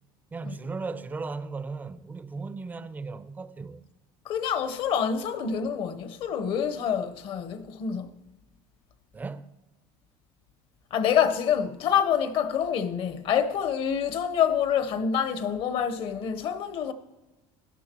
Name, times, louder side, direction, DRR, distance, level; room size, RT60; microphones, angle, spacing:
voice 1, 0.3-3.9 9.1-9.5, right 4 dB, 15° right, 0.5 m, -36 dB
voice 2, 4.2-8.1 10.9-16.9, left 8 dB, 50° left, 0.9 m, -27 dB
17.0 x 12.0 x 3.0 m
cardioid pair, 130°, 12 cm